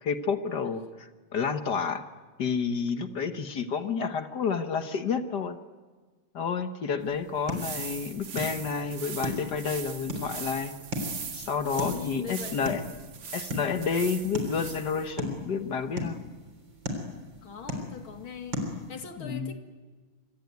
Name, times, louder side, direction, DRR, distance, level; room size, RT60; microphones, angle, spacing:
voice 1, 0.0-2.1 2.4-5.6 6.3-10.7 11.3-12.8 13.3-16.2 19.2-19.5, left 6 dB, 55° left, 9 dB, 1.7 m, -30 dB
sound 1, 7.0-19.0, left 1 dB, 65° right, 4.4 m, -38 dB
sound 2, 7.4-15.1, right 6 dB, 90° right, 2.9 m, -40 dB
voice 2, 11.9-12.8 17.4-19.6, left 6 dB, 80° left, 6 dB, 2.9 m, -40 dB
25.5 x 24.5 x 9.4 m, 1.4 s
omnidirectional pair, 2.2 m